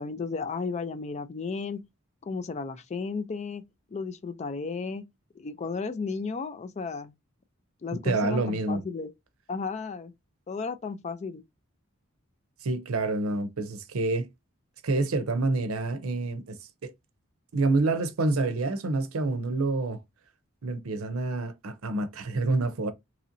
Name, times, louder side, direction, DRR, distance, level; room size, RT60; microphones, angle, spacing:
voice 1, 0.0-1.8 2.2-3.6 3.9-5.0 5.4-7.1 7.8-9.1 9.5-10.1 10.5-11.4, left 4 dB, 35° left, 0.4 m, -34 dB
voice 2, 8.0-8.8 12.6-14.3 14.8-16.6 16.8-16.9 17.5-20.0 20.6-22.9, right 3 dB, 85° right, 0.6 m, -27 dB
3.0 x 2.8 x 2.5 m
head